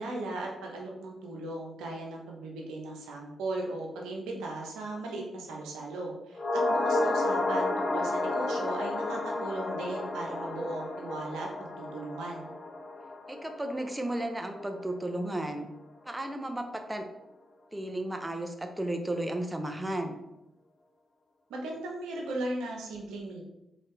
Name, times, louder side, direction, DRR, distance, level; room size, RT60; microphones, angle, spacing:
voice 1, 0.0-12.5 21.5-23.4, right 2 dB, 85° right, -1 dB, 0.9 m, -37 dB
sound 1, 6.4-14.8 15.1-15.2, left 2 dB, 40° left, 0.5 m, -31 dB
voice 2, 13.3-15.7 16.0-17.0 17.7-20.2, right 1 dB, 15° right, 5 dB, 0.7 m, -34 dB
4.1 x 3.9 x 3.3 m, 0.90 s
supercardioid pair, 45°, 0 cm